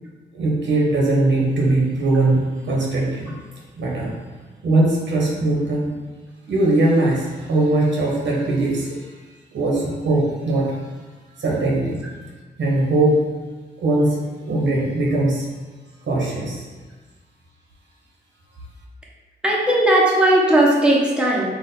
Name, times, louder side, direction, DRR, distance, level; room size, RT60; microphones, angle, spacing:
voice 1, 0.3-3.3 3.8-4.1 4.6-5.9 6.5-9.1 9.5-10.8 11.4-12.0 12.6-13.2 13.8-15.5 16.1-16.7, right 2 dB, 80° right, -3 dB, 1.1 m, -20 dB
voice 2, 19.4-21.5, right 1 dB, 5° right, -4 dB, 0.9 m, -17 dB
4.5 x 2.4 x 4.0 m, 1.3 s
cardioid pair, 90°, 19 cm